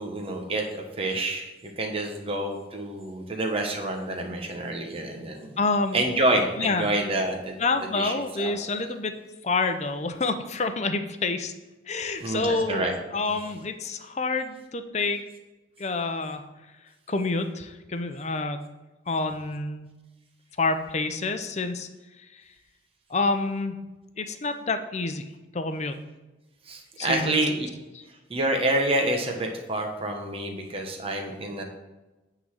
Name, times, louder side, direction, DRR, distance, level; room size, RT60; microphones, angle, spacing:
voice 1, 0.0-5.6 5.9-7.6 7.9-8.6 12.2-12.9 13.3-13.4 26.7-27.7 28.3-31.6, right 1 dB, 35° right, 2 dB, 1.0 m, -28 dB
voice 2, 5.6-6.0 6.6-6.9 7.6-9.2 9.4-11.5 11.9-12.9 13.1-15.2 15.8-16.4 17.1-18.6 19.1-19.9 20.6-21.9 22.3-22.4 23.1-23.8 24.2-26.0 27.0-27.4, left 3 dB, 40° left, 8 dB, 0.7 m, -28 dB
9.3 x 3.9 x 7.2 m, 1.1 s
head